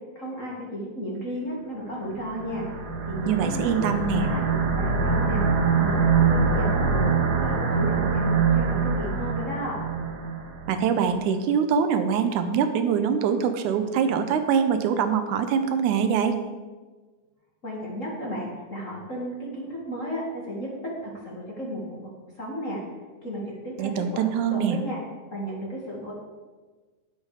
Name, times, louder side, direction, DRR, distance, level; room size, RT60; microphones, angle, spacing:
voice 1, 0.2-2.7 3.0-5.4 5.8-9.8 17.6-20.7 21.0-22.1 22.4-22.8 23.2-25.0 25.3-26.1, equal, 30° left, -3 dB, 1.9 m, -34 dB
sound 1, 2.1-10.8, right 5 dB, 65° right, 1.0 m, -24 dB
voice 2, 3.3-4.3 10.7-16.4 23.8-24.8, right 7 dB, 85° right, 8 dB, 2.3 m, -24 dB
10.0 x 8.4 x 4.9 m, 1.3 s
omnidirectional pair, 3.4 m